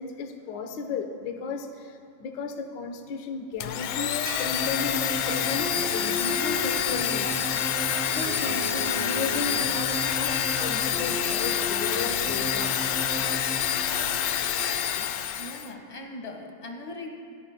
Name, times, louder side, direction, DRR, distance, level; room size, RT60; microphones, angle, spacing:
voice 1, 0.0-7.5 8.0-13.4 15.0-15.1, left 4 dB, 65° left, 5 dB, 1.1 m, -35 dB
Domestic sounds home sounds, 3.6-15.7, left 10 dB, 85° left, 1.3 m, -27 dB
sound 1, 4.3-7.5 10.8-10.9, right 3 dB, 85° right, 4.0 m, -45 dB
sound 2, 4.4-14.8, equal, 50° right, 3.0 m, -35 dB
voice 2, 15.4-17.1, left 2 dB, 30° left, 2 dB, 0.7 m, -39 dB
26.5 x 13.0 x 2.2 m, 2.2 s
omnidirectional pair, 3.3 m